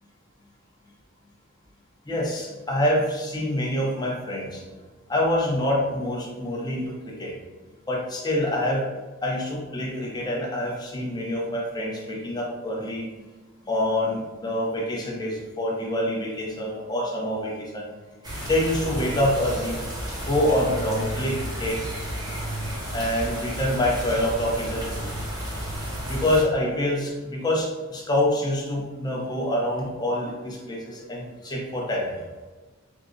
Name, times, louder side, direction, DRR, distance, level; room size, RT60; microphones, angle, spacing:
voice 1, 2.1-4.6 5.1-7.3 7.9-8.9 9.2-13.0 13.6-17.9 18.4-19.8 20.2-21.8 22.9-25.1 26.1-32.2, left 1 dB, 20° left, -2 dB, 0.6 m, -26 dB
sound 1, 18.2-26.4, equal, 20° right, 0.9 m, -32 dB
3.6 x 2.0 x 3.7 m, 1.3 s
head